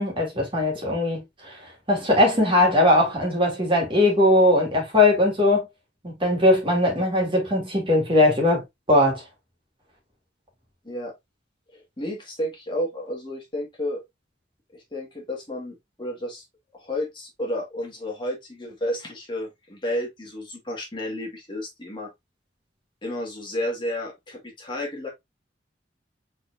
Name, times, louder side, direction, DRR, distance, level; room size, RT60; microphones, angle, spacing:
voice 1, 0.0-1.6 1.9-5.7 6.0-9.2, left 1 dB, 30° right, 2.1 m, -20 dB
voice 2, 11.7-14.0 14.7-16.4 16.7-22.1 23.0-25.1, left 1 dB, 25° left, 1.9 m, -31 dB
4.4 x 3.9 x 2.6 m
head